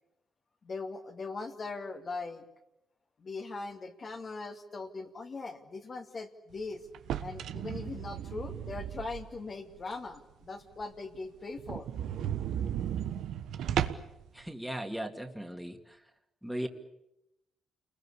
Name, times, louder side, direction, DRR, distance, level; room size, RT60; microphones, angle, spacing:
voice 1, 0.6-2.4 3.2-6.8 7.2-11.9, left 3 dB, 40° left, 2 dB, 2.3 m, -40 dB
sound 1, 6.9-9.5 9.9-10.0 10.4-10.5 10.8-10.9 11.2-11.3 11.6-14.2, right 10 dB, 75° right, 1.3 m, -35 dB
voice 2, 14.3-16.0 16.4-16.7, right 1 dB, 5° right, 3 dB, 2.4 m, -37 dB
28.5 x 21.5 x 8.5 m, 0.86 s
cardioid pair, 90°, 0 cm